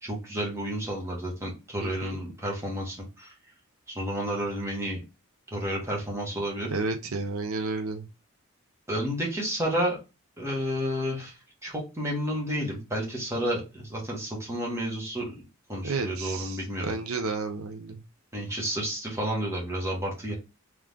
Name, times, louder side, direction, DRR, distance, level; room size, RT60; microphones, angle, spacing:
voice 1, 0.0-3.3 3.9-5.0 5.5-6.7 8.9-10.0 10.4-11.3 11.6-16.8 18.3-20.3, equal, 15° right, -3 dB, 1.5 m, -31 dB
voice 2, 1.8-2.2 6.7-8.1 15.8-18.0, right 3 dB, 85° right, 5 dB, 0.7 m, -32 dB
3.6 x 3.1 x 3.5 m, 0.27 s
head